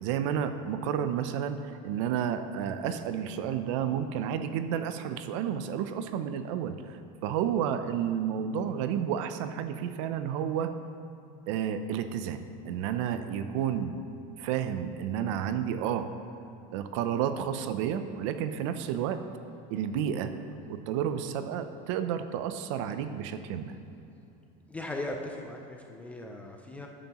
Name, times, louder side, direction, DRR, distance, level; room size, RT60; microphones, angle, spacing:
voice 1, 0.0-10.7 11.5-14.0 14.4-16.1 16.7-19.2 19.7-20.3 20.7-23.8, right 9 dB, 55° right, 10 dB, 0.5 m, -31 dB
voice 2, 24.7-26.9, left 1 dB, 5° left, 2 dB, 0.3 m, -38 dB
11.5 x 9.1 x 3.0 m, 2.8 s
supercardioid pair, 175°, 19 cm